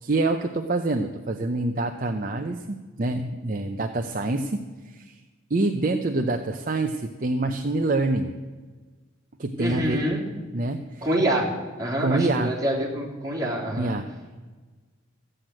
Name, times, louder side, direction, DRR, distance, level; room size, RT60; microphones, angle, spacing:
voice 1, 0.0-5.1 5.5-8.3 9.4-10.0 10.5-11.1 12.0-12.6 13.7-14.1, right 2 dB, 40° right, 5 dB, 0.6 m, -26 dB
voice 2, 9.6-10.2 11.0-11.5 11.8-13.9, right 1 dB, 15° right, -5 dB, 3.3 m, -26 dB
14.5 x 7.8 x 8.8 m, 1.3 s
head